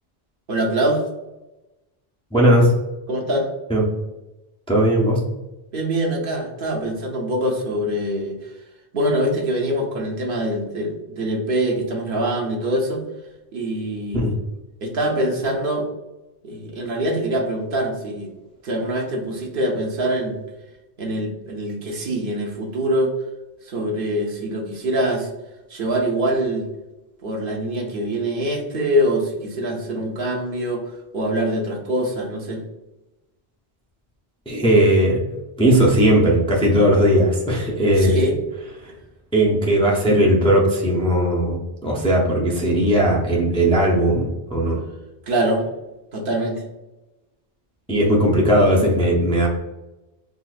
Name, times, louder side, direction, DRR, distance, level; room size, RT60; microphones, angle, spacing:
voice 1, 0.5-1.0 3.1-3.5 5.7-8.4 8.9-13.0 13.5-14.2 14.8-15.9 16.4-18.3 18.6-20.4 21.0-23.1 23.6-25.3 25.7-26.7 27.2-32.7 38.0-38.4 45.3-45.6 46.1-46.6, right 1 dB, 65° right, 1 dB, 0.8 m, -24 dB
voice 2, 2.3-2.7 3.7-3.9 4.7-5.2 14.1-14.3 34.5-35.2 35.6-38.2 39.3-44.8 47.9-49.5, right 1 dB, 5° left, -3 dB, 0.5 m, -17 dB
3.9 x 2.4 x 2.4 m, 1.0 s
omnidirectional pair, 1.0 m